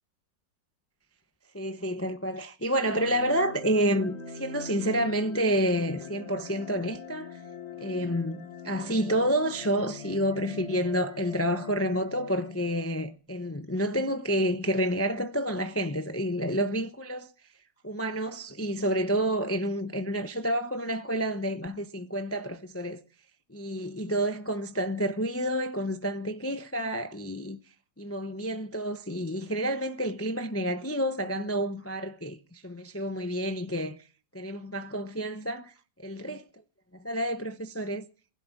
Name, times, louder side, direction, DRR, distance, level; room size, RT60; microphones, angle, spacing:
voice 1, 1.5-7.4 7.8-17.3 17.8-23.0 23.5-27.6 28.0-34.0 34.3-35.7 36.0-36.4 37.0-38.0, equal, 15° left, 0.4 m, -29 dB
sound 1, 2.9-13.2, left 4 dB, 40° left, 1.7 m, -43 dB
20.0 x 11.5 x 5.9 m
omnidirectional pair, 1.9 m